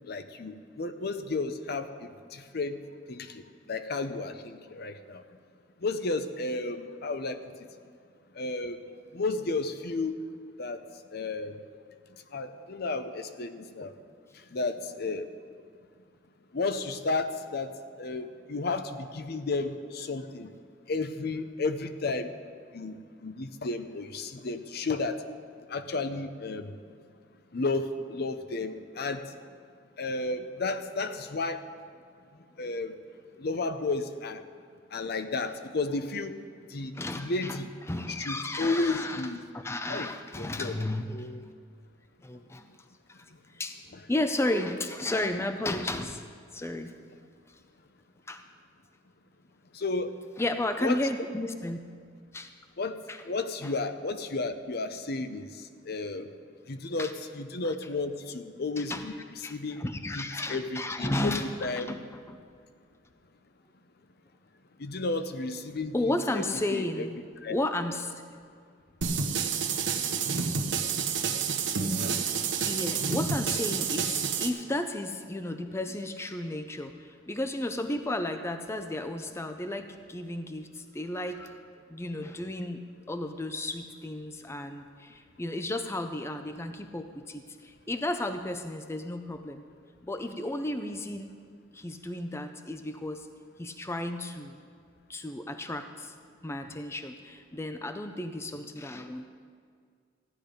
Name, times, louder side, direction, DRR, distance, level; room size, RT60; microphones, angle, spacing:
voice 1, 0.1-2.8 3.1-3.4 3.7-5.2 5.8-7.7 8.3-8.8 9.1-10.2 10.6-10.8 11.1-11.6 12.3-13.9 14.5-15.3 16.5-17.7 18.0-20.5 20.9-22.3 22.7-25.2 25.7-26.7 27.5-29.3 30.0-31.6 32.6-32.9 33.4-34.4 34.9-36.3 36.7-37.7 38.3-39.4 39.9-40.1 40.4-40.7 49.7-50.1 50.8-51.0 52.8-53.0 53.3-56.3 56.7-59.1 59.4-59.8 60.1-61.9 64.8-65.9 66.7-67.1 67.4-67.6, left 3 dB, 55° left, 9 dB, 0.7 m, -32 dB
voice 2, 36.9-37.6 37.9-41.5 42.2-42.7 43.5-43.8 44.1-46.2 46.5-46.9 47.5-47.6 48.3-48.4 50.4-51.8 52.3-52.5 53.1-53.2 53.6-53.7 57.0-57.1 58.8-59.1 59.4-62.4 65.9-67.2 67.5-68.2 72.6-81.6 81.9-89.6 90.0-91.4 91.7-93.3 93.6-94.6 95.1-96.1 96.4-99.3, left 1 dB, 15° left, 7 dB, 0.5 m, -33 dB
sound 1, 69.0-74.5, right 6 dB, 75° right, 1.1 m, -29 dB
14.5 x 10.5 x 5.1 m, 2.1 s
head